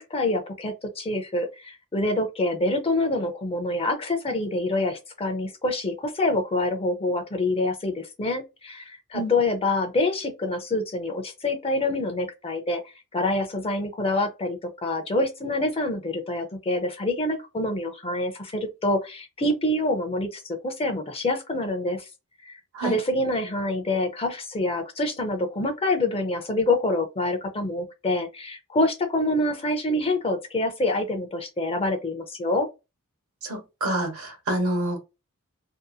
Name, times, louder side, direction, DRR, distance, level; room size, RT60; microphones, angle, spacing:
voice 1, 0.0-12.8 13.1-22.1 22.4-32.7, left 2 dB, 25° left, 0.5 m, -26 dB
voice 2, 33.4-35.0, right 1 dB, 70° right, 1.2 m, -27 dB
2.7 x 2.5 x 2.3 m
head